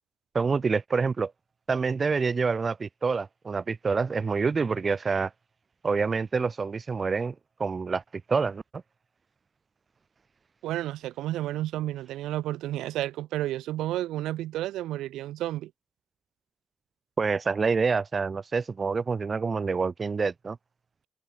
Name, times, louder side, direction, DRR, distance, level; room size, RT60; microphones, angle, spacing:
voice 1, 0.3-1.3 1.7-5.3 5.8-7.3 7.6-8.0 8.3-8.8 17.2-20.6, right 4 dB, 45° right, 2.7 m, -27 dB
voice 2, 10.6-15.7, right 14 dB, 85° right, 3.8 m, -31 dB
supercardioid pair, 60°, 0 cm